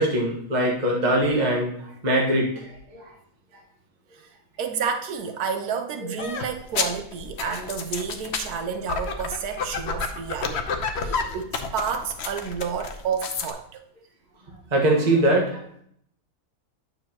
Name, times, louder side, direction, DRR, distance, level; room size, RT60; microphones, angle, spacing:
voice 1, 0.0-3.1 10.9-11.3 14.7-15.8, right 1 dB, 30° right, -2 dB, 1.5 m, -23 dB
voice 2, 4.6-13.8, right 6 dB, 80° right, 6 dB, 1.2 m, -30 dB
sound 1, 6.2-13.5, left 5 dB, 55° left, 0.9 m, -30 dB
9.2 x 6.5 x 2.9 m, 0.68 s
omnidirectional pair, 1.6 m